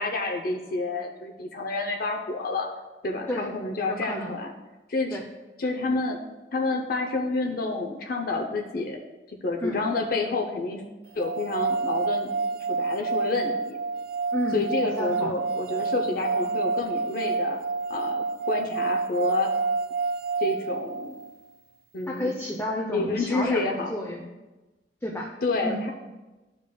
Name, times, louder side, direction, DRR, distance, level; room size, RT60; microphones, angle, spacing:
voice 1, 0.0-2.7 3.0-4.5 4.9-5.2 5.6-6.2 6.5-9.0 9.3-10.8 11.2-12.3 12.8-13.8 14.5-17.6 17.9-19.5 20.4-21.1 21.9-22.3 22.9-23.9 25.4-25.9, left 3 dB, 55° left, 3 dB, 0.6 m, -29 dB
voice 2, 3.9-4.3 5.1-5.2 9.6-9.8 14.3-15.4 22.1-24.3 25.0-25.3 25.6-25.8, equal, 15° left, -1 dB, 0.6 m, -31 dB
sound 1, 11.2-21.3, right 4 dB, 55° right, 0.3 m, -28 dB
11.5 x 5.3 x 2.3 m, 1.1 s
head